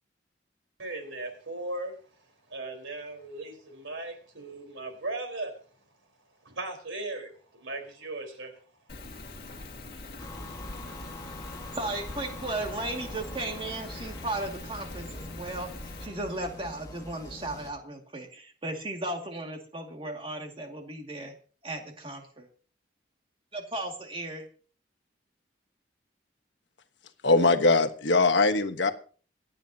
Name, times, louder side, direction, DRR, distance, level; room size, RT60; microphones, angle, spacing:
voice 1, 0.8-1.9 2.5-5.5 6.4-8.6, right 2 dB, 90° right, 4 dB, 4.6 m, -37 dB
Rain, 8.9-16.1, left 2 dB, 50° left, 2.6 m, -43 dB
sound 1, 10.2-17.8, left 1 dB, 20° left, 1.9 m, -44 dB
voice 2, 11.8-15.7 16.0-21.3 21.6-22.5 23.5-24.5, right 2 dB, 30° right, 2 dB, 2.4 m, -35 dB
voice 3, 27.2-28.9, left 3 dB, 70° left, 7 dB, 1.3 m, -21 dB
26.5 x 9.2 x 2.9 m, 0.42 s
head